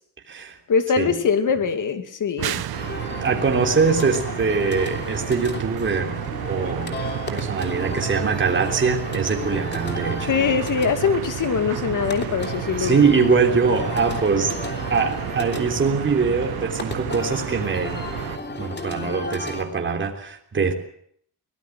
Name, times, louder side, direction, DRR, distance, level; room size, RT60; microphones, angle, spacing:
voice 1, 0.7-2.6 10.3-13.0, left 6 dB, 55° left, 9 dB, 2.5 m, -22 dB
sound 1, 2.4-18.4, right 12 dB, 85° right, 1.0 m, -31 dB
sound 2, 2.7-19.6, left 3 dB, 30° left, 3.2 m, -34 dB
voice 2, 3.2-6.2 6.5-6.9 7.3-10.4 12.8-14.5 14.9-18.0 18.6-20.7, right 5 dB, 30° right, 3 dB, 3.5 m, -22 dB
24.0 x 18.0 x 7.6 m, 0.66 s
wide cardioid pair, 150°, 36 cm